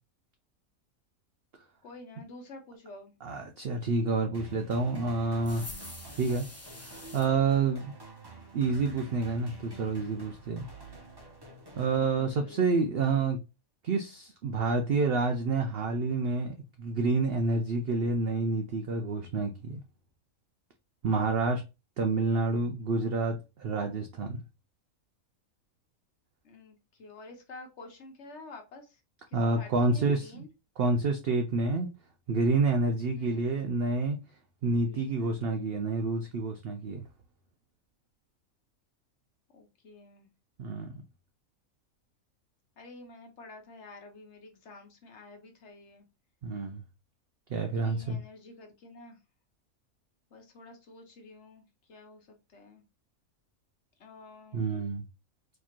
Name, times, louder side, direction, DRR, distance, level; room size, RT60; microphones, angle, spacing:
voice 1, 1.8-3.1 12.2-12.9 26.4-29.0 29.3-30.5 33.1-33.5 34.9-35.5 39.5-40.3 42.8-46.1 47.7-49.2 50.3-52.8 54.0-54.7, left 2 dB, 55° left, 1.1 m, -50 dB
voice 2, 3.2-5.7 6.1-6.5 6.8-7.9 8.5-10.7 11.8-13.4 13.8-19.8 21.0-21.6 22.0-24.4 29.3-30.4 30.8-31.9 32.3-34.2 34.6-37.0 40.6-40.9 46.4-46.8 47.5-48.2 54.5-55.0, right 3 dB, 60° right, 0.6 m, -28 dB
sound 1, 4.3-12.7, right 3 dB, 20° right, 0.7 m, -49 dB
sound 2, 5.4-7.3, left 2 dB, 20° left, 0.4 m, -45 dB
4.3 x 2.9 x 2.5 m
omnidirectional pair, 1.5 m